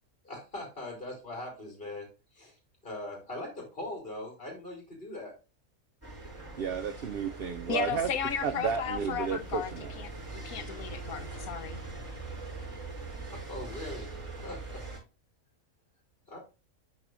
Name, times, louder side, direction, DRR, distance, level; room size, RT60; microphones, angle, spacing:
voice 1, 0.2-2.1 2.3-2.6 2.8-5.3 13.3-14.1 14.4-14.8 16.3-16.4, left 1 dB, 40° left, 3.1 m, -40 dB
sound 1, 6.0-15.0, right 3 dB, 10° right, 4.9 m, -42 dB
voice 2, 6.6-8.1 8.4-9.9, right 6 dB, 65° right, 0.6 m, -32 dB
voice 3, 7.7-9.7 10.0-11.8, left 8 dB, 80° left, 1.3 m, -35 dB
11.5 x 4.6 x 2.5 m
omnidirectional pair, 1.5 m